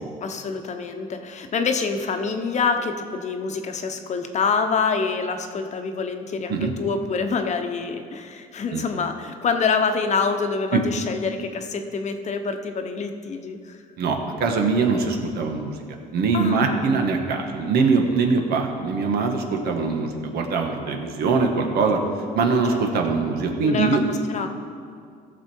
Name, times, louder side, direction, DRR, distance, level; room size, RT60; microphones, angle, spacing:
voice 1, 0.2-13.8 16.3-16.8 23.1-23.2 23.6-24.5, left 5 dB, 45° left, 6 dB, 1.0 m, -26 dB
voice 2, 14.0-22.0 22.3-24.0, right 4 dB, 70° right, 3 dB, 1.5 m, -22 dB
16.0 x 6.8 x 4.6 m, 2.2 s
cardioid pair, 110°, 17 cm